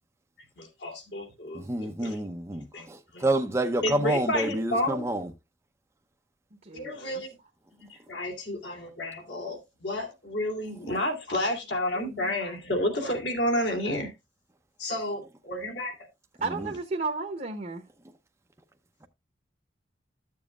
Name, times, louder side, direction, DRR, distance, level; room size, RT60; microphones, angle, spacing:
voice 1, 0.6-2.2 2.7-2.9 3.1-3.3 3.8-5.1 6.7-7.3 8.1-14.1 14.8-16.1, left 1 dB, 65° left, 2.5 m, -31 dB
voice 2, 1.5-5.3 16.6-16.7, right 1 dB, 15° right, 0.6 m, -28 dB
voice 3, 6.6-7.2 16.4-17.8, right 3 dB, 45° right, 1.0 m, -33 dB
13.5 x 7.2 x 2.3 m
head